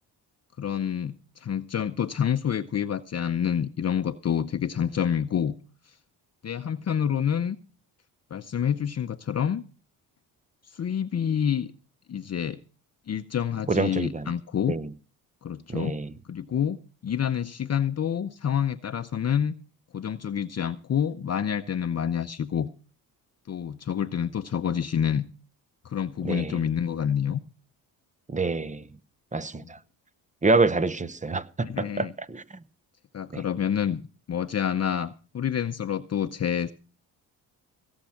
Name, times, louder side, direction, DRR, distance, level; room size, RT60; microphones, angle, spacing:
voice 1, 0.6-5.6 5.9-6.0 6.4-7.6 8.3-9.6 10.7-11.7 12.1-12.6 13.1-14.8 15.4-16.0 16.3-16.8 17.0-19.5 19.9-22.7 23.5-25.3 25.8-27.4 29.6-29.7 31.6-32.1 33.1-34.0 34.3-36.7, left 8 dB, 35° left, 0.8 m, -28 dB
voice 2, 13.7-14.3 14.7-14.9 15.7-16.1 26.2-26.6 28.3-28.8 29.3-29.8 30.4-32.4 33.3-33.4, right 3 dB, 15° right, 0.8 m, -26 dB
17.0 x 7.5 x 5.8 m
supercardioid pair, 70°, 42 cm